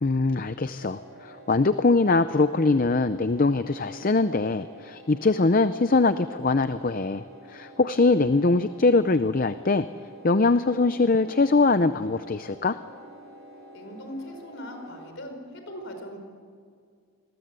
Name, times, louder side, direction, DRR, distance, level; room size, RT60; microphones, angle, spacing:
voice 1, 0.0-9.9 10.2-12.8, left 3 dB, 40° left, 12 dB, 0.6 m, -22 dB
sound 1, 0.8-15.1, equal, 85° right, 5.4 m, -48 dB
voice 2, 13.7-16.2, equal, 55° left, 5 dB, 5.0 m, -39 dB
27.0 x 21.5 x 8.2 m, 2.1 s
head